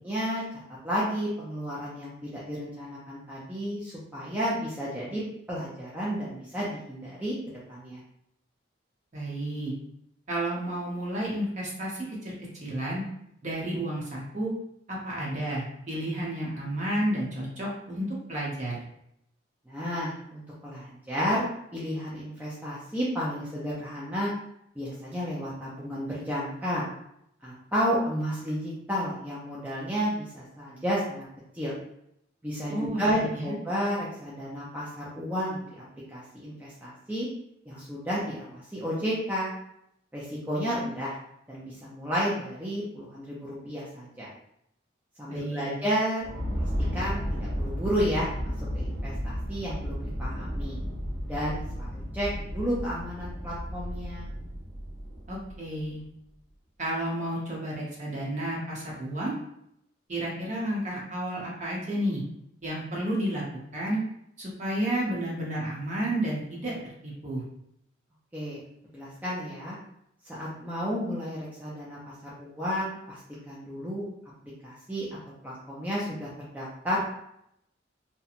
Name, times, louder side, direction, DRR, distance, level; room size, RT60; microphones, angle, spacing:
voice 1, 0.0-0.4 0.8-5.2 5.5-7.4 7.7-8.0 19.7-21.5 21.7-24.3 24.8-26.8 27.4-31.2 31.5-31.7 32.4-37.3 37.7-39.5 40.1-41.2 41.5-44.3 45.2-46.3 46.9-50.8 51.3-54.3 68.3-68.6 68.9-69.8 70.3-72.1 72.4-73.2 73.5-74.0 74.6-75.1 75.4-77.0, equal, 10° right, -7 dB, 0.4 m, -32 dB
voice 2, 9.1-9.7 10.3-12.3 12.6-13.0 13.4-14.5 14.9-18.8 32.7-33.5 45.3-45.7 55.3-56.0 56.8-59.3 60.1-62.2 62.6-63.4 63.7-64.0 64.4-67.4, right 1 dB, 40° right, -4 dB, 0.8 m, -31 dB
sound 1, 46.2-55.8, equal, 85° right, 0.9 m, -33 dB
2.8 x 2.2 x 2.4 m, 0.76 s
head